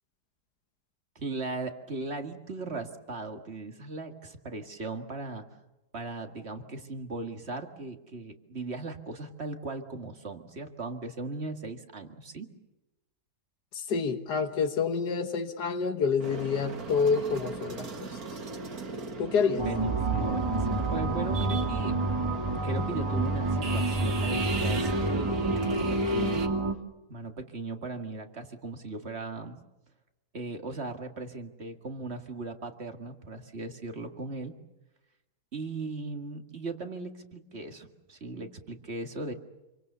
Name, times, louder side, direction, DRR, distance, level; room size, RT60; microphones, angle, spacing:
voice 1, 1.2-5.4 5.9-12.5 19.5-22.0 22.6-26.4 27.1-29.6 30.3-34.5 35.5-39.3, right 3 dB, 40° right, 6 dB, 2.2 m, -38 dB
voice 2, 13.7-17.9 19.2-19.6, left 5 dB, 90° left, 7 dB, 1.9 m, -28 dB
sound 1, 16.2-26.5, right 4 dB, 65° right, 2.3 m, -39 dB
sound 2, 19.6-26.7, right 2 dB, 15° right, 1.5 m, -28 dB
27.0 x 25.0 x 6.8 m, 1.0 s
omnidirectional pair, 1.7 m